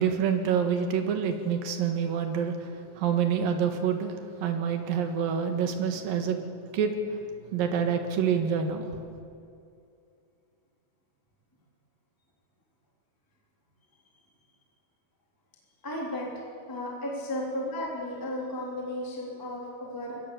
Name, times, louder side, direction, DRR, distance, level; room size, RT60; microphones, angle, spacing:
voice 1, 0.0-6.4 6.7-7.0 7.5-9.0, right 7 dB, 65° right, 6 dB, 3.0 m, -27 dB
voice 2, 15.8-16.3 16.7-20.2, left 1 dB, 5° left, -3 dB, 2.8 m, -34 dB
23.0 x 17.0 x 6.8 m, 2.5 s
omnidirectional pair, 4.9 m